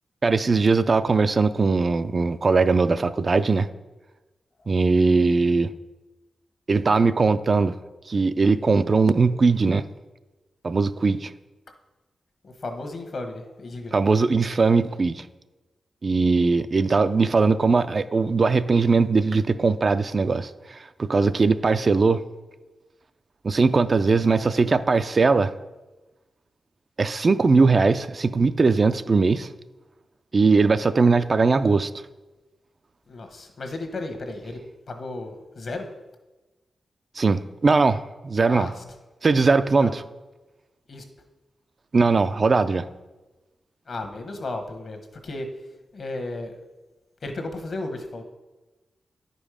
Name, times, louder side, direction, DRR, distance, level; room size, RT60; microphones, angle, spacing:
voice 1, 0.2-3.7 4.7-5.7 6.7-7.8 8.1-9.8 10.6-11.3 13.9-15.2 16.0-22.2 23.4-25.5 27.0-29.5 30.3-31.9 37.2-38.7 39.2-40.0 41.9-42.9, right 4 dB, 40° right, 0.3 m, -20 dB
voice 2, 12.4-13.9 33.1-34.6 34.9-35.9 38.4-38.8 39.8-40.0 40.9-41.0 43.9-45.5 45.9-46.6 47.2-48.2, left 2 dB, 55° left, 1.2 m, -34 dB
10.0 x 5.3 x 4.9 m
wide cardioid pair, 105°, 0 cm